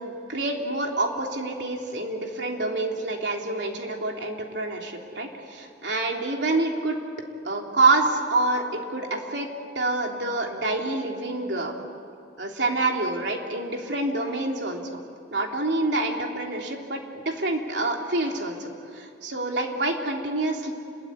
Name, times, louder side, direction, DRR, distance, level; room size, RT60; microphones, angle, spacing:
voice 1, 0.0-6.9 7.4-9.5 9.7-11.7 12.4-15.0 15.3-18.7 18.9-20.7, right 2 dB, 75° right, 1 dB, 3.3 m, -27 dB
29.5 x 21.5 x 9.4 m, 2.5 s
head